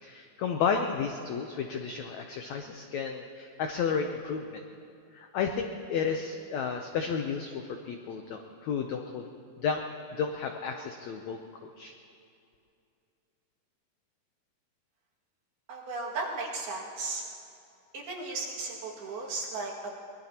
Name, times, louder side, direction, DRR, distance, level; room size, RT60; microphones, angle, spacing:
voice 1, 0.0-4.6 5.1-9.2 9.6-11.4 11.8-11.9, left 6 dB, 85° left, 4 dB, 1.5 m, -32 dB
voice 2, 15.7-17.2 17.9-20.0, right 3 dB, 85° right, -4 dB, 4.1 m, -35 dB
23.0 x 20.0 x 2.9 m, 2.6 s
omnidirectional pair, 4.2 m